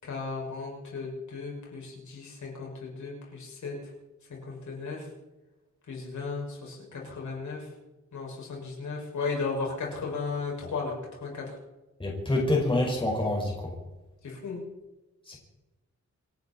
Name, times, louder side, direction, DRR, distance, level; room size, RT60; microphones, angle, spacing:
voice 1, 0.0-3.9 4.3-5.1 5.9-7.7 8.1-11.6 14.2-14.6, left 4 dB, 75° left, -2 dB, 6.3 m, -35 dB
voice 2, 12.0-13.7 15.3-15.4, left 2 dB, 15° left, -2 dB, 5.3 m, -27 dB
27.5 x 11.5 x 4.4 m, 1.1 s
wide cardioid pair, 165°, 30 cm